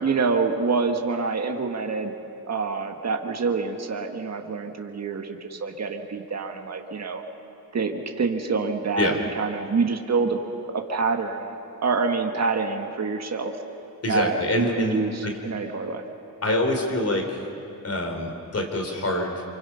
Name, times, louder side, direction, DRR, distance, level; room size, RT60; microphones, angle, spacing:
voice 1, 0.0-2.1 2.5-7.2 7.7-10.4 10.7-11.5 11.8-13.5 14.1-16.0, right 4 dB, 50° right, 4 dB, 1.6 m, -26 dB
voice 2, 14.0-15.3 16.4-17.4 17.8-19.4, left 1 dB, 45° left, 3 dB, 3.2 m, -25 dB
28.5 x 24.5 x 5.7 m, 2.9 s
wide cardioid pair, 140°, 35 cm